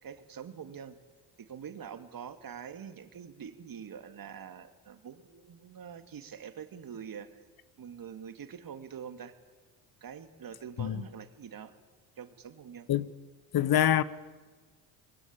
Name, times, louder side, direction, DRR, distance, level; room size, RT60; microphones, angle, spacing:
voice 1, 0.0-1.0 1.4-7.4 7.8-9.4 10.0-11.7 12.2-12.9, right 7 dB, 45° right, 2.4 m, -45 dB
voice 2, 13.5-14.0, left 11 dB, 50° left, 1.3 m, -25 dB
25.0 x 21.5 x 8.7 m
hypercardioid pair, 65°, 48 cm